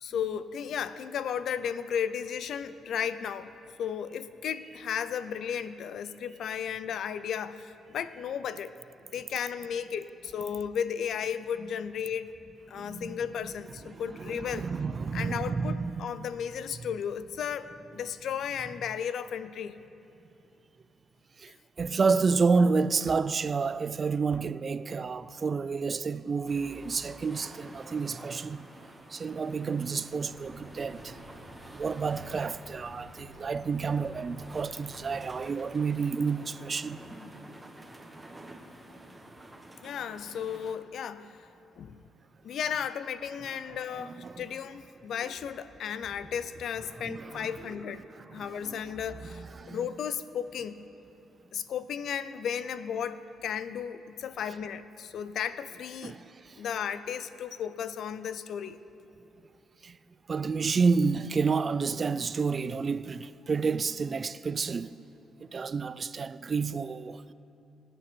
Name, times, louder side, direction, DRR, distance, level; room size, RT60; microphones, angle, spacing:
voice 1, 0.0-3.5 3.8-8.7 9.1-12.3 12.7-14.7 15.1-19.8 39.8-41.4 41.8-42.0 42.4-48.0 48.3-50.8 51.5-56.2 56.6-58.8, left 8 dB, 70° left, 0.5 m, -34 dB
voice 2, 12.7-13.2 13.9-16.0 21.4-28.7 29.1-31.2 31.7-37.0 44.2-44.5 47.1-47.7 48.3-49.0 49.3-49.9 56.0-56.6 59.8-60.0 60.3-65.1 65.5-67.3, right 5 dB, 40° right, 0.4 m, -30 dB
sound 1, 26.5-40.7, right 1 dB, 15° right, 1.5 m, -50 dB
sound 2, 30.2-35.3, left 1 dB, 30° left, 3.7 m, -50 dB
24.0 x 9.0 x 4.5 m
cardioid pair, 90°, 0 cm